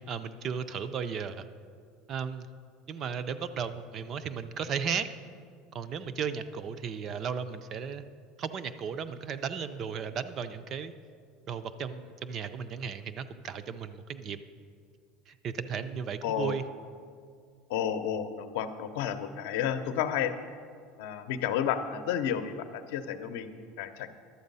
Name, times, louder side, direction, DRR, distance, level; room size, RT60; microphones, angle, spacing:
voice 1, 0.0-1.5 2.1-2.5 2.9-5.1 5.7-8.1 8.4-10.9 11.5-14.4 15.3-16.6, right 6 dB, 25° right, 11 dB, 0.3 m, -35 dB
voice 2, 16.2-16.5 17.7-20.4 21.0-24.1, left 9 dB, 70° left, 10 dB, 0.7 m, -31 dB
11.5 x 8.0 x 5.4 m, 2.1 s
cardioid pair, 180°, 0 cm